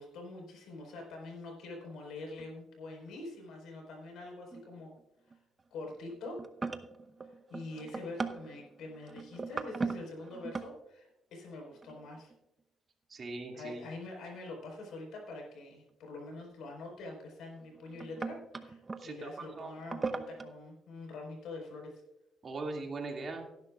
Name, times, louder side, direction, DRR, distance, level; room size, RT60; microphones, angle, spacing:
voice 1, 0.0-5.0 5.3-5.4 5.7-6.4 7.2-12.3 13.2-22.0, left 2 dB, 80° left, 1 dB, 4.5 m, -45 dB
sound 1, 2.4-2.5 4.5-5.0 5.3-5.6 6.1-10.7 11.8-12.3 14.3-14.4 16.7-16.8 17.6-19.0 19.8-20.5, right 4 dB, 30° right, 0.9 m, -39 dB
voice 2, 13.1-13.9 19.0-19.7 22.4-23.5, right 3 dB, 45° right, 2 dB, 2.3 m, -40 dB
17.0 x 10.5 x 2.4 m, 0.93 s
cardioid pair, 90°, 0 cm